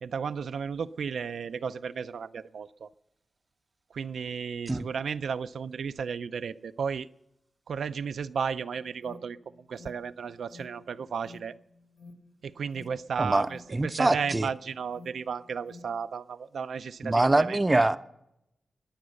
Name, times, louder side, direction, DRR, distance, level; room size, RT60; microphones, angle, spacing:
voice 1, 0.0-2.9 3.9-7.1 7.7-9.4 9.7-11.5 12.4-17.6, right 6 dB, 85° right, 0.5 m, -34 dB
Alarm, 8.9-16.0, left 3 dB, 50° left, 1.6 m, -53 dB
voice 2, 13.2-14.5 17.0-18.0, right 2 dB, 20° right, 0.5 m, -24 dB
20.0 x 8.7 x 6.4 m
wide cardioid pair, 150°, 0 cm